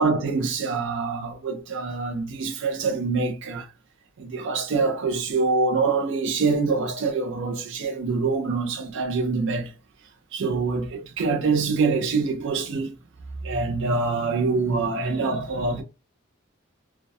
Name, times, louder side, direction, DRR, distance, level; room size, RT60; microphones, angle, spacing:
voice 1, 0.0-3.7 4.2-9.7 10.3-12.9 13.4-15.8, right 4 dB, 65° right, 0.4 m, -25 dB
2.2 x 2.1 x 2.6 m
head